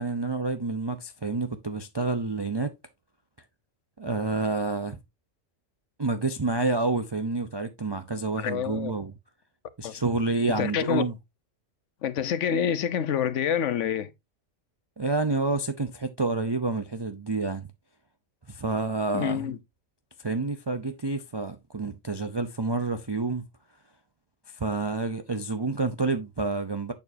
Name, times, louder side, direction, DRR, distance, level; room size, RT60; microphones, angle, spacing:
voice 1, 0.0-2.7 4.0-5.0 6.0-9.1 9.8-11.1 15.0-17.7 18.5-19.5 20.2-23.4 24.5-26.9, right 3 dB, 25° right, 0.6 m, -28 dB
voice 2, 8.4-8.9 9.8-9.9 10.6-11.0 12.0-14.1 19.1-19.6, left 8 dB, 70° left, 1.1 m, -27 dB
8.0 x 6.9 x 2.7 m
omnidirectional pair, 1.3 m